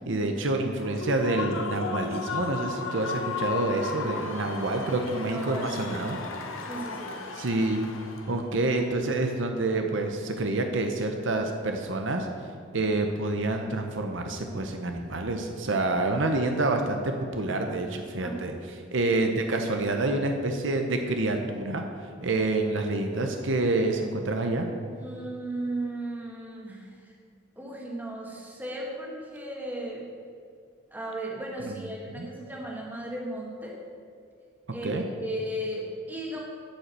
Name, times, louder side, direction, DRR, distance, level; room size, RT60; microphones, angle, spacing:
voice 1, 0.1-6.2 7.4-7.9 8.3-12.3 12.7-18.5 18.9-21.8 22.2-24.7 32.2-32.3 34.8-35.0, right 2 dB, 65° right, 4 dB, 0.8 m, -27 dB
Human voice / Cheering / Applause, 0.8-8.4, left 4 dB, 80° left, 1.1 m, -35 dB
voice 2, 5.3-5.7 6.7-7.2 18.2-18.6 25.0-27.1 27.6-30.1 30.9-33.8 34.7-36.4, right 1 dB, 10° right, -3 dB, 1.7 m, -36 dB
10.0 x 5.7 x 7.5 m, 2.2 s
head